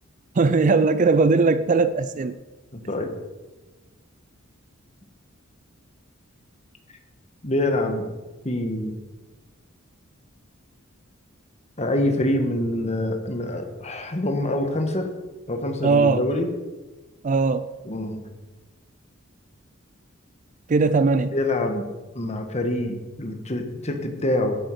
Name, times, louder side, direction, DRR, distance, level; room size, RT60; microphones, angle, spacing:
voice 1, 0.4-2.4 15.8-16.2 17.2-17.7 20.7-21.3, right 4 dB, 35° right, 0.4 m, -19 dB
voice 2, 2.7-3.1 7.4-8.1 8.4-9.0 11.8-15.1 15.5-16.5 17.8-18.2 21.3-21.8 22.1-24.6, left 1 dB, 30° left, 1.6 m, -25 dB
11.5 x 11.0 x 4.9 m
head